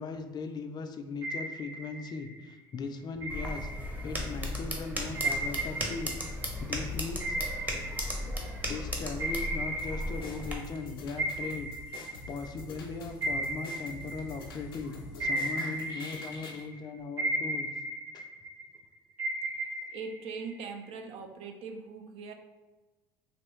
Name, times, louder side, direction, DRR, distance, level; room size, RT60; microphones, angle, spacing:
voice 1, 0.0-3.7 4.0-6.2 6.6-7.4 8.2-8.3 8.7-11.7 12.3-17.7 18.1-18.2, left 4 dB, 40° left, 6 dB, 0.4 m, -38 dB
sound 1, 1.2-2.5 3.2-4.4 5.1-8.8 9.2-10.8 11.2-14.7 15.2-16.8 17.2-18.8 19.2-20.9, right 1 dB, 45° right, 1.4 m, -35 dB
sound 2, 3.3-10.5, equal, 15° right, 0.8 m, -36 dB
sound 3, 9.8-16.6, left 2 dB, 85° left, 0.5 m, -46 dB
voice 2, 10.8-11.6 11.9-12.1 19.5-22.3, right 4 dB, 60° right, 5 dB, 0.5 m, -43 dB
3.1 x 2.9 x 3.0 m, 1.2 s
hypercardioid pair, 65°, 11 cm